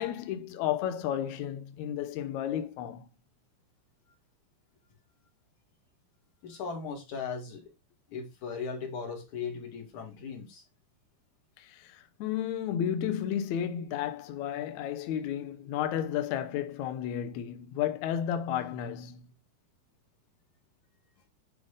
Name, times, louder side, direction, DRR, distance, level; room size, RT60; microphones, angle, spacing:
voice 1, 0.0-3.1 11.6-19.3, left 10 dB, 90° left, 1.6 m, -32 dB
voice 2, 6.4-7.7 8.1-10.6, left 5 dB, 55° left, 3.2 m, -38 dB
8.5 x 3.8 x 5.0 m
omnidirectional pair, 4.4 m